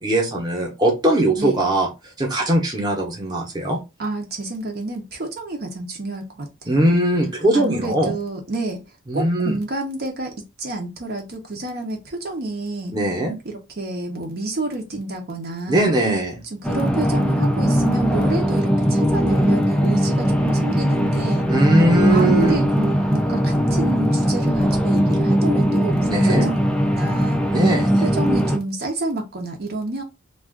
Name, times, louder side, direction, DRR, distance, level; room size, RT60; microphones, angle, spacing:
voice 1, 0.0-1.9 2.2-3.8 6.7-8.2 9.1-9.6 12.9-13.3 15.7-16.4 21.5-22.6 26.1-26.5 27.5-28.1, right 1 dB, 20° right, 0 dB, 0.8 m, -20 dB
voice 2, 4.0-6.9 7.5-8.8 9.1-10.3 10.6-13.0 13.4-15.9 16.6-21.5 22.1-26.6 26.9-27.4 28.0-30.0, right 2 dB, 55° right, 2 dB, 0.7 m, -29 dB
sound 1, 16.6-28.6, equal, 5° left, 0.3 m, -19 dB
2.4 x 2.4 x 3.5 m, 0.25 s
head